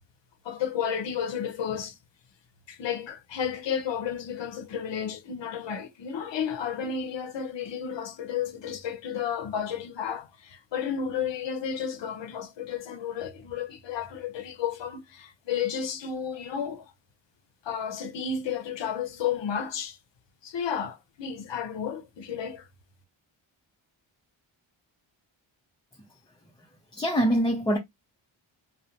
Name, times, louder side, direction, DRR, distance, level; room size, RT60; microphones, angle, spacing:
voice 1, 0.4-2.0 2.7-16.9 17.6-20.0 20.4-22.7, left 7 dB, 65° left, 0.7 m, -32 dB
voice 2, 26.9-27.8, equal, 10° left, 0.5 m, -24 dB
2.4 x 2.1 x 2.8 m
cardioid pair, 90°, 48 cm